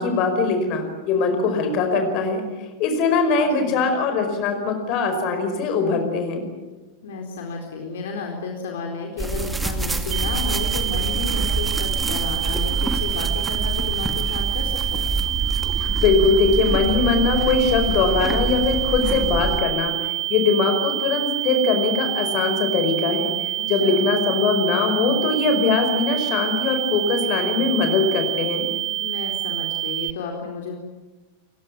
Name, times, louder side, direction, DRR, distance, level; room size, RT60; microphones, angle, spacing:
voice 1, 0.0-2.4 2.8-6.5 15.9-19.9 20.3-28.7, left 4 dB, 40° left, 5 dB, 5.1 m, -21 dB
voice 2, 3.4-3.9 7.0-15.1 23.6-24.0 29.0-30.8, left 4 dB, 60° left, 2 dB, 4.1 m, -32 dB
sound 1, 9.2-19.6, right 2 dB, 10° right, 2.2 m, -26 dB
sound 2, 10.1-30.1, right 14 dB, 40° right, 0.9 m, -27 dB
29.5 x 17.0 x 9.5 m, 1.2 s
figure-of-eight pair, 90°, 0 cm